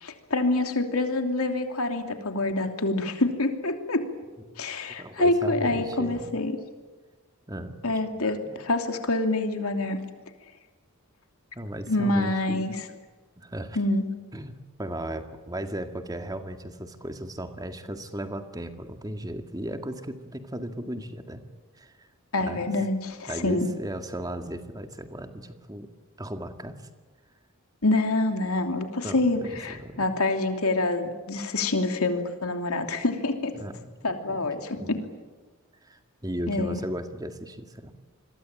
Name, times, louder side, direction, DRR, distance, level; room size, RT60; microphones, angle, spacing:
voice 1, 0.0-4.1 4.6-6.6 7.8-10.0 11.9-12.7 13.7-14.1 22.3-23.7 27.8-33.5 34.0-35.0 36.5-36.8, left 2 dB, 75° left, 5 dB, 3.0 m, -26 dB
voice 2, 5.0-6.3 7.5-8.0 8.4-8.5 11.6-12.7 13.4-13.8 14.3-21.4 21.8-22.1 22.4-22.7 23.3-25.9 26.2-26.8 29.0-30.1 33.5-34.5 34.7-34.9 35.8-37.9, right 1 dB, 15° right, 7 dB, 1.9 m, -36 dB
27.5 x 22.0 x 8.9 m, 1.3 s
head